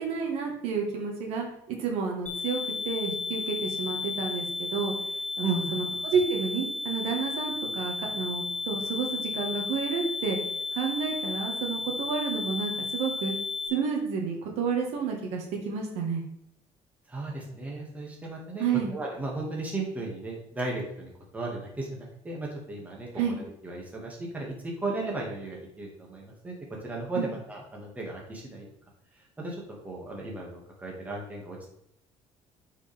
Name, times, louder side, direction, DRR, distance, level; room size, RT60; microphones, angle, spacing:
voice 1, 0.0-4.9 5.4-10.4 10.7-13.3 13.7-16.2 18.6-18.9 23.1-23.4 27.2-27.3, right 5 dB, 80° right, 2 dB, 1.6 m, -30 dB
sound 1, 2.3-13.7, left 4 dB, 10° left, 1.0 m, -33 dB
voice 2, 5.4-5.8 17.1-18.6 18.9-26.5 26.8-28.7 29.4-31.7, right 2 dB, 15° right, -2 dB, 1.9 m, -35 dB
8.8 x 4.9 x 3.5 m, 0.75 s
cardioid pair, 140°, 11 cm